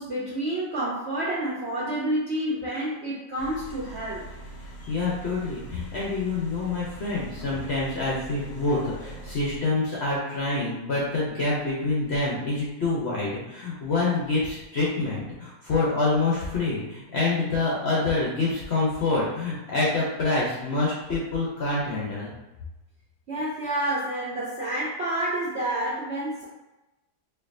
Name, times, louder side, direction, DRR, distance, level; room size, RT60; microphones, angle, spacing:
voice 1, 0.0-4.3 23.3-26.5, right 1 dB, 65° right, -6 dB, 0.7 m, -29 dB
sound 1, 3.4-9.6, right 1 dB, 25° left, 0.9 m, -42 dB
voice 2, 4.8-22.3, left 3 dB, 55° left, -5 dB, 0.7 m, -26 dB
4.3 x 2.7 x 2.6 m, 1.0 s
omnidirectional pair, 1.8 m